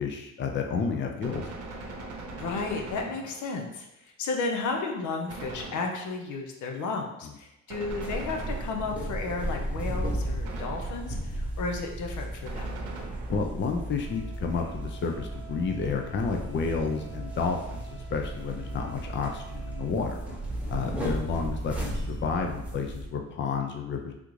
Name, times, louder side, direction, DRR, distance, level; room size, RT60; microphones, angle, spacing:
voice 1, 0.0-1.5 7.2-7.3 13.3-20.2 20.7-24.1, left 5 dB, 40° left, 4 dB, 0.5 m, -31 dB
Gunshot gunfire, 1.2-3.7 5.3-6.3 7.7-9.1 10.4-11.3 12.5-13.6, right 2 dB, 90° right, 0.7 m, -41 dB
voice 2, 2.4-12.7 20.8-21.1, left 3 dB, 75° left, 2 dB, 0.6 m, -33 dB
sound 1, 7.9-23.1, right 1 dB, 5° right, 0.9 m, -35 dB
3.5 x 2.5 x 3.1 m, 0.87 s
cardioid pair, 90°, 30 cm